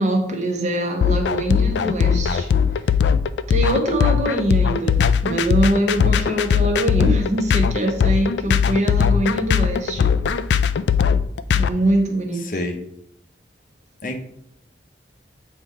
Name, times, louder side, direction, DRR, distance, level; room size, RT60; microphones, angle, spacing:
voice 1, 0.0-2.5 3.5-10.1 11.5-12.5, right 1 dB, 40° right, 2 dB, 1.0 m, -23 dB
sound 1, 1.0-11.7, left 7 dB, 75° left, 0.3 m, -19 dB
voice 2, 12.1-12.8 14.0-14.2, left 2 dB, 45° left, 5 dB, 0.7 m, -29 dB
7.7 x 3.0 x 4.7 m, 0.74 s
head